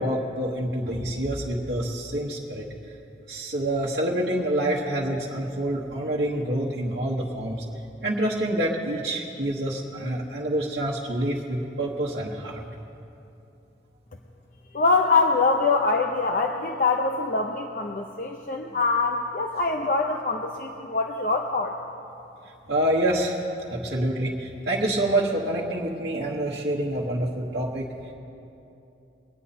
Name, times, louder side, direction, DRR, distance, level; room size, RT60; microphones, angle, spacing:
voice 1, 0.0-2.7 3.3-7.6 8.0-12.6 22.7-23.4 23.7-27.9, right 1 dB, 65° right, -6 dB, 1.2 m, -27 dB
voice 2, 14.7-21.7, left 3 dB, 45° left, 2 dB, 0.6 m, -24 dB
22.5 x 9.1 x 4.2 m, 2.8 s
head